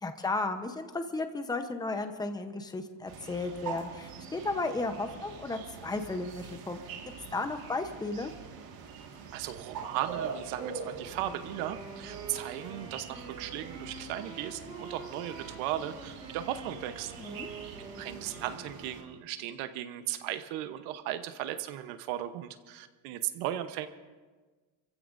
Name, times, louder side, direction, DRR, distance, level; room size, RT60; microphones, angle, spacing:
voice 1, 0.0-6.8 7.3-8.3 17.2-17.5, left 3 dB, 10° left, 7 dB, 0.9 m, -34 dB
sound 1, 3.1-19.0, right 6 dB, 50° right, 2.0 m, -44 dB
voice 2, 9.3-17.1 17.8-23.9, right 12 dB, 85° right, 9 dB, 1.1 m, -36 dB
Wind instrument woodwind instrument, 11.0-19.3, right 3 dB, 15° right, 4.7 m, -47 dB
29.5 x 15.5 x 2.7 m, 1.3 s
cardioid pair, 145°, 45 cm